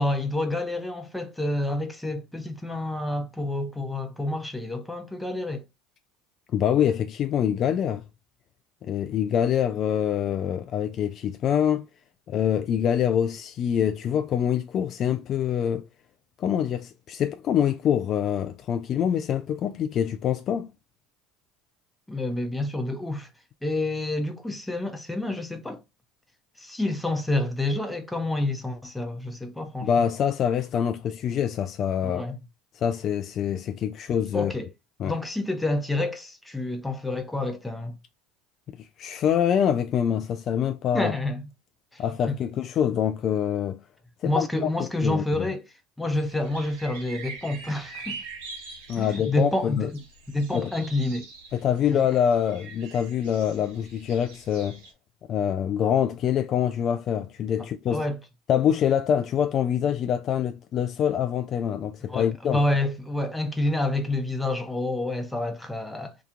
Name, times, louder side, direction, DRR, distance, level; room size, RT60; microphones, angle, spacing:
voice 1, 0.0-5.6 22.1-23.3 23.6-25.8 26.6-30.0 32.0-32.4 34.3-34.7 35.0-38.0 40.9-41.4 41.9-42.0 44.2-45.6 46.0-48.2 49.0-50.0 50.3-51.3 51.9-52.0 57.9-58.2 62.1-66.1, left 2 dB, 5° left, 0.8 m, -28 dB
voice 2, 6.5-8.0 8.8-11.9 12.3-15.8 16.4-20.7 29.8-32.2 32.8-34.5 35.0-35.1 39.0-41.1 42.0-43.8 44.2-44.7 45.0-45.5 48.9-49.9 50.5-50.7 51.5-54.8 55.3-58.0 58.5-62.6, left 9 dB, 45° left, 0.3 m, -25 dB
sound 1, 46.1-54.9, right 4 dB, 75° right, 1.0 m, -44 dB
2.9 x 2.3 x 3.5 m
hypercardioid pair, 90°, 0 cm